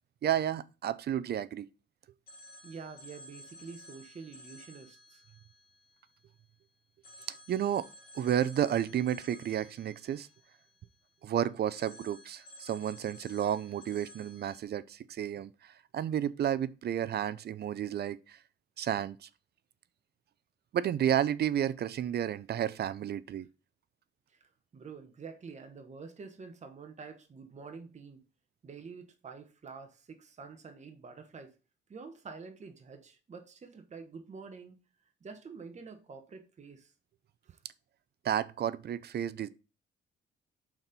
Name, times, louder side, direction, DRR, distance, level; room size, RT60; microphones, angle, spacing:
voice 1, 0.2-1.7 7.5-7.9 8.1-10.3 11.2-18.4 18.8-19.3 20.7-23.5 38.2-39.5, right 10 dB, 55° right, 0.5 m, -31 dB
Telephone, 2.3-6.5 7.0-11.3 11.7-14.6, left 1 dB, 50° left, 2.3 m, -54 dB
voice 2, 2.6-5.2 24.3-28.3 28.6-31.6 31.9-34.8 35.2-36.9 37.4-37.6, right 5 dB, 35° right, 1.2 m, -48 dB
5.8 x 4.4 x 5.3 m
cardioid pair, 90°, 20 cm